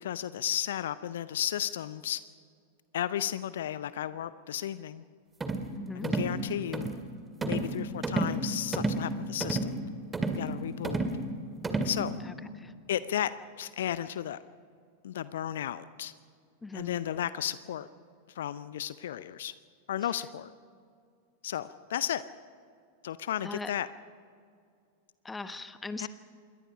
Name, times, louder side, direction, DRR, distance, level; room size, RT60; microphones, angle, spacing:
voice 1, 0.0-2.2 2.9-5.0 5.9-6.9 7.4-9.8 10.3-11.0 11.8-12.1 12.9-14.4 15.0-16.1 16.7-17.9 18.3-19.5 19.9-20.5 21.4-22.2 23.0-23.9 26.0-26.1, left 11 dB, 60° left, 16 dB, 0.6 m, -34 dB
sound 1, 5.4-5.7 6.0-6.3 6.7-7.0 7.4-7.7 8.0-8.4 8.7-9.0 9.4-9.7 10.1-10.5 10.8-11.2 11.6-12.0, right 2 dB, 15° right, 2.1 m, -30 dB
voice 2, 5.7-6.1 12.2-12.7 16.6-17.0 23.4-23.7 25.2-26.1, left 3 dB, 10° left, 11 dB, 1.2 m, -40 dB
27.0 x 22.0 x 5.1 m, 2.2 s
figure-of-eight pair, 90°, 0 cm